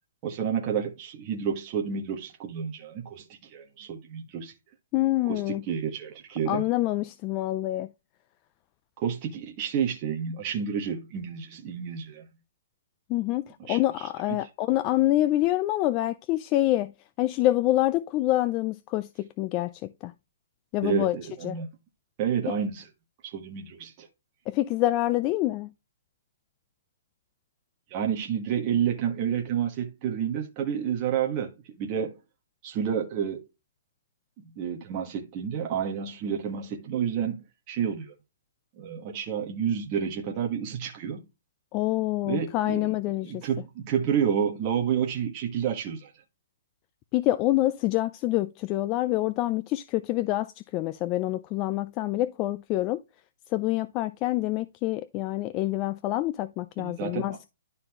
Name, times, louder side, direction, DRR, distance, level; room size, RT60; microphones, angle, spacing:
voice 1, 0.2-4.5 5.3-6.7 9.0-12.3 13.6-14.5 20.8-21.7 22.2-22.9 23.2-24.1 27.9-31.5 31.8-32.2 32.6-33.5 34.4-38.1 38.8-41.3 42.2-42.9 43.2-46.1 56.8-57.4, right 8 dB, 30° right, 1.3 m, -30 dB
voice 2, 4.9-5.6 6.5-7.9 13.1-13.4 13.7-16.9 17.2-19.7 20.0-20.1 20.7-21.2 21.4-21.6 24.5-25.7 41.7-43.4 47.1-50.5 50.7-53.0 53.5-57.5, left 16 dB, 25° left, 0.3 m, -26 dB
11.5 x 4.2 x 2.9 m
hypercardioid pair, 160°, 0 cm